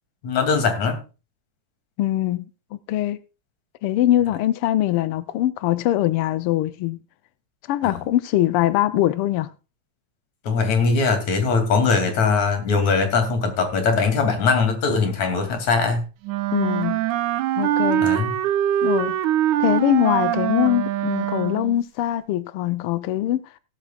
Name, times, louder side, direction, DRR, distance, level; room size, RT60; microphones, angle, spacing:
voice 1, 0.2-1.0 7.8-8.0 10.4-16.1 18.0-18.4, left 4 dB, 70° left, 4.1 m, -21 dB
voice 2, 2.0-2.5 2.9-3.2 3.8-7.0 7.7-9.5 16.5-17.1 17.6-18.1 18.8-19.2 19.6-23.4, left 13 dB, 85° left, 1.2 m, -22 dB
Wind instrument woodwind instrument, 16.2-21.8, right 12 dB, 90° right, 2.3 m, -23 dB
16.0 x 13.0 x 2.4 m
omnidirectional pair, 3.4 m